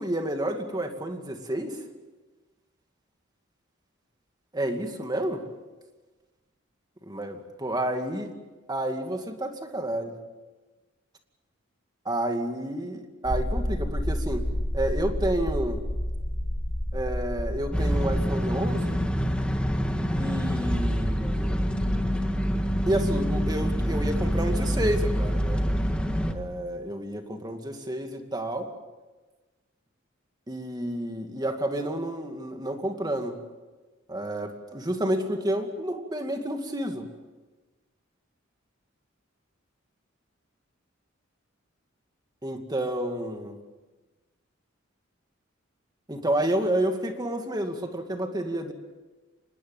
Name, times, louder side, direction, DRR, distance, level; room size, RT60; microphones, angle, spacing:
voice 1, 0.0-1.8 4.5-5.5 7.0-8.3 8.7-10.2 12.1-14.5 14.7-15.8 16.9-19.0 20.2-21.6 22.9-25.6 26.2-28.7 30.5-33.4 34.1-37.1 42.4-43.6 46.1-48.7, right 1 dB, 20° right, 5 dB, 2.2 m, -30 dB
sound 1, 13.3-18.3, equal, 30° left, 1.9 m, -29 dB
sound 2, 17.7-26.3, equal, 5° left, 1.6 m, -26 dB
25.5 x 20.0 x 7.3 m, 1.2 s
head